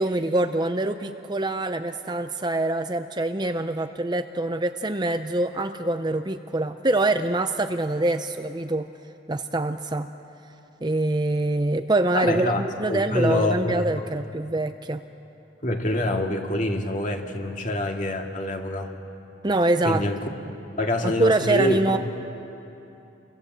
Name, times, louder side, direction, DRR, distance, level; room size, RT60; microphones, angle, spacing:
voice 1, 0.0-8.9 9.3-10.1 10.8-15.0 19.4-20.0 21.0-22.0, right 2 dB, 20° right, 8 dB, 0.6 m, -24 dB
voice 2, 12.1-12.6 12.9-13.9 15.6-18.9 19.8-20.3 20.8-22.0, left 1 dB, 40° left, 2 dB, 2.2 m, -26 dB
29.5 x 24.5 x 7.9 m, 2.9 s
head